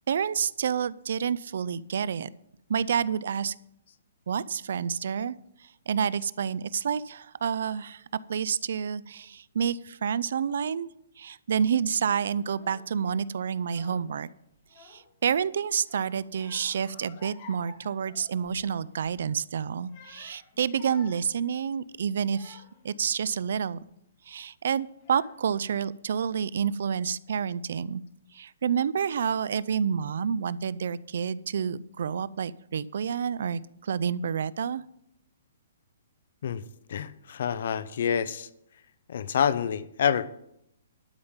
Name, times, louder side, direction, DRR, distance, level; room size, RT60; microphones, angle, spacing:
voice 1, 0.1-2.3 2.7-3.5 4.3-5.3 5.9-8.0 8.3-10.9 11.2-14.3 14.8-23.8 24.3-28.0 28.3-34.8, right 7 dB, 65° right, 19 dB, 0.4 m, -29 dB
Child speech kid speaking / Crying sobbing, 12.4-12.9 13.5-14.2 14.5-15.3 15.8-18.7 19.0-19.2 19.7-22.9 23.5-23.9 24.6-24.7 25.0-25.7, left 3 dB, 40° left, 2.1 m, -52 dB
voice 2, 36.9-38.5 39.1-40.3, left 8 dB, 60° left, 16 dB, 0.6 m, -27 dB
12.0 x 5.1 x 7.3 m, 0.78 s
hypercardioid pair, 155°, 0 cm